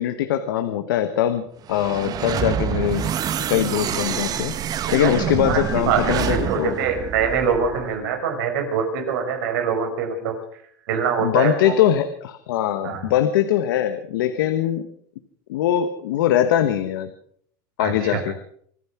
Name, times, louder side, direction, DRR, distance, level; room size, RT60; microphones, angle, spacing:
voice 1, 0.0-3.1 3.5-4.6 4.9-6.8 11.2-14.9 15.5-17.1 17.8-18.3, left 11 dB, 90° left, 9 dB, 1.2 m, -22 dB
sound 1, 1.6-7.9, right 9 dB, 35° right, 1.0 m, -27 dB
voice 2, 4.9-10.3 10.9-11.7 12.8-13.0 17.8-18.2, right 6 dB, 80° right, 5 dB, 5.0 m, -24 dB
25.0 x 9.7 x 5.9 m, 0.63 s
supercardioid pair, 125°, 11 cm